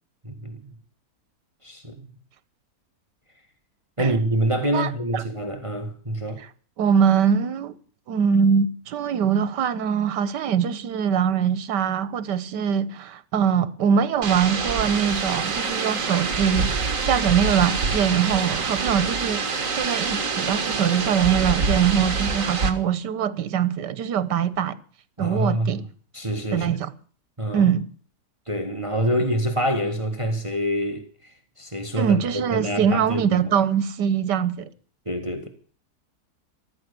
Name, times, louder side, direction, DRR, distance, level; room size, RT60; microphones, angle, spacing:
voice 1, 0.2-0.7 1.6-2.1 4.0-6.4 25.2-25.8 26.1-26.7 27.4-27.7 28.5-33.5 35.1-35.5, right 1 dB, 20° right, 1.9 m, -26 dB
voice 2, 4.7-5.2 6.8-7.7 8.1-24.8 25.2-25.8 26.5-26.9 27.5-27.9 32.0-34.7, right 7 dB, 85° right, 1.6 m, -23 dB
sound 1, 14.2-22.7, right 4 dB, 50° right, 2.0 m, -26 dB
14.0 x 13.5 x 6.9 m
omnidirectional pair, 1.8 m